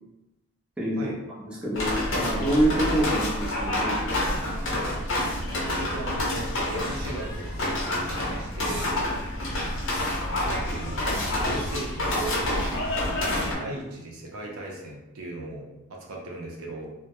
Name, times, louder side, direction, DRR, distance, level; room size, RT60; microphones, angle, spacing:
voice 1, 0.8-1.1 1.4-4.4, right 1 dB, 5° right, -6 dB, 0.4 m, -27 dB
sound 1, 1.7-13.5, left 1 dB, 60° left, 0.6 m, -28 dB
voice 2, 5.7-9.0 10.1-12.7 13.1-16.9, right 1 dB, 80° right, -1 dB, 0.5 m, -38 dB
2.1 x 2.1 x 2.8 m, 0.96 s
head